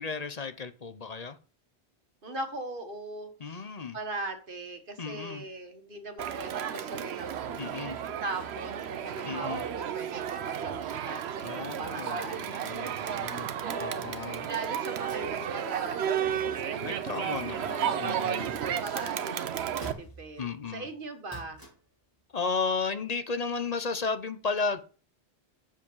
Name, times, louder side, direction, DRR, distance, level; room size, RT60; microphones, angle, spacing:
voice 1, 0.0-1.4 3.4-4.0 5.0-5.4 7.6-8.0 9.3-9.6 11.4-14.5 16.8-18.5 20.4-20.9 22.3-24.8, left 4 dB, 40° left, 10 dB, 0.7 m, -34 dB
voice 2, 2.2-3.6 3.9-7.6 8.2-16.9 17.2-17.3 17.7-18.2 18.6-20.4 20.7-21.7, right 2 dB, 50° right, 6 dB, 1.6 m, -40 dB
Crowd, 6.2-19.9, right 9 dB, 70° right, 0.9 m, -33 dB
sound 1, 19.8-20.5 21.3-22.0 23.8-23.9, right 2 dB, 15° left, 2.9 m, -46 dB
7.4 x 7.3 x 5.5 m, 0.37 s
omnidirectional pair, 1.2 m